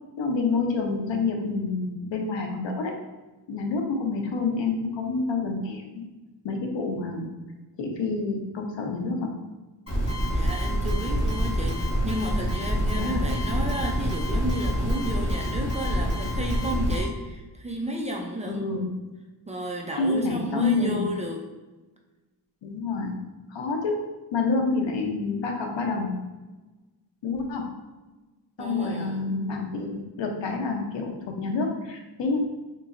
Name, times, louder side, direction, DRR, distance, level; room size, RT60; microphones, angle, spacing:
voice 1, 0.2-2.9 3.5-6.0 6.4-7.3 7.8-9.3 13.0-13.3 18.5-18.9 20.0-21.1 22.6-23.2 23.5-26.2 27.2-27.7 28.6-32.4, left 4 dB, 90° left, 2 dB, 0.7 m, -28 dB
sound 1, 9.9-17.0, equal, 30° left, 1.4 m, -26 dB
voice 2, 10.3-18.7 19.5-21.5 28.6-29.4, equal, 15° right, -1 dB, 0.4 m, -32 dB
3.8 x 3.0 x 2.5 m, 1.2 s
wide cardioid pair, 120°, 43 cm